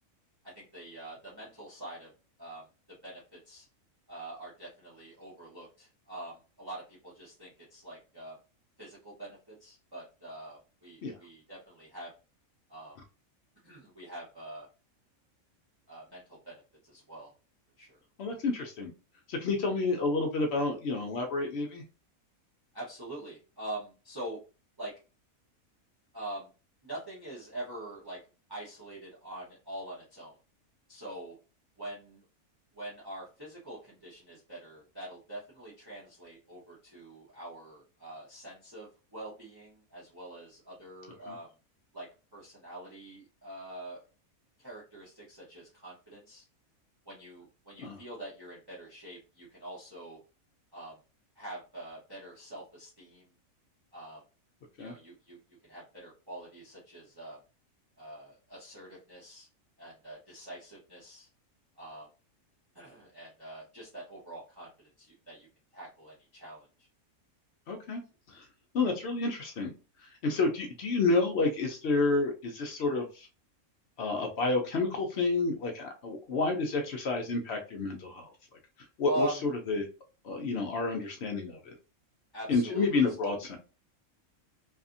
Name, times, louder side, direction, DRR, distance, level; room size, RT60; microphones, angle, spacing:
voice 1, 0.4-2.1 2.4-2.7 3.0-3.7 4.1-8.4 8.8-12.1 12.7-12.9 13.6-14.7 15.9-17.3 17.8-18.0 22.7-24.4 24.8-24.9 26.1-26.5 26.8-28.2 28.5-30.4 30.9-31.4 31.8-32.2 32.7-41.5 41.9-44.0 44.6-46.4 47.0-50.2 50.7-51.0 51.3-53.3 53.9-54.2 54.8-55.4 55.7-57.4 58.0-59.5 59.8-61.3 61.8-62.1 62.7-65.5 65.7-66.9 79.0-79.4 82.3-83.3, right 1 dB, 20° right, -7 dB, 0.8 m, -44 dB
voice 2, 18.2-18.9 19.3-21.8 41.3-41.4 47.8-48.0 54.8-54.9 67.7-68.0 68.3-68.5 68.7-69.7 70.0-73.3 74.0-78.3 79.0-79.9 80.2-81.7 82.5-83.6, left 3 dB, 65° left, 2 dB, 0.7 m, -30 dB
2.7 x 2.5 x 2.5 m, 0.33 s
omnidirectional pair, 1.5 m